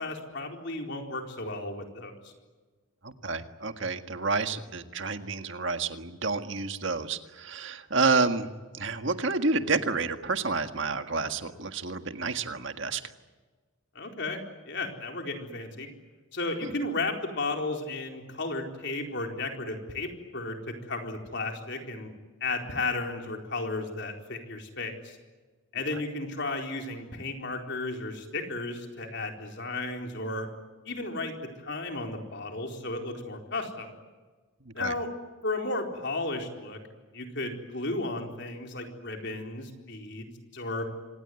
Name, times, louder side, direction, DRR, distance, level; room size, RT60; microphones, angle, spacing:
voice 1, 0.0-2.3 13.9-14.4 14.7-15.9 16.3-22.1 22.4-25.2 25.7-30.5 30.9-33.9 34.7-35.1 35.4-36.8 37.1-40.9, left 2 dB, 55° left, 3 dB, 4.3 m, -34 dB
voice 2, 3.0-8.5 8.7-13.0 16.6-16.7 34.8-34.9, right 4 dB, 60° right, 8 dB, 1.7 m, -29 dB
26.5 x 19.5 x 9.6 m, 1.3 s
head